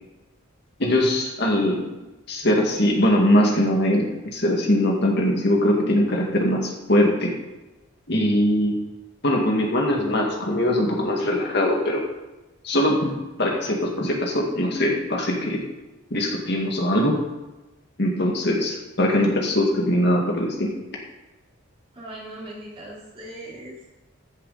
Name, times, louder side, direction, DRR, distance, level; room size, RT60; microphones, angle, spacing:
voice 1, 0.8-1.8 2.3-4.1 4.3-7.3 8.1-8.8 9.2-12.0 12.6-15.6 16.1-17.2 18.0-20.7, left 1 dB, 55° left, -1 dB, 2.1 m, -21 dB
voice 2, 21.9-23.9, right 1 dB, 25° right, -6 dB, 4.0 m, -39 dB
15.0 x 7.6 x 4.2 m, 1.1 s
head